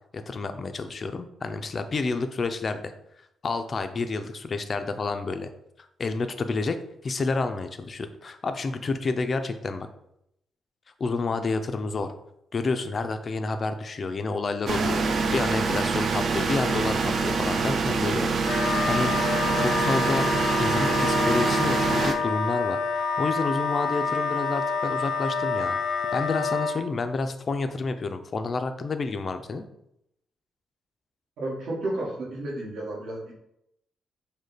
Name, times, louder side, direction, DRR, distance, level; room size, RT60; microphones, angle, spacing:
voice 1, 0.1-2.8 3.4-5.5 6.0-6.8 7.0-9.9 11.0-12.1 12.5-20.3 20.6-25.8 26.1-29.7, left 3 dB, 30° left, 8 dB, 0.3 m, -29 dB
sound 1, 14.7-22.1, right 4 dB, 45° right, 0.4 m, -25 dB
Wind instrument woodwind instrument, 18.4-26.8, left 4 dB, 80° left, 0.6 m, -27 dB
voice 2, 31.4-33.3, right 2 dB, 75° right, -3 dB, 1.4 m, -32 dB
5.1 x 2.2 x 3.9 m, 0.79 s
wide cardioid pair, 170°, 0 cm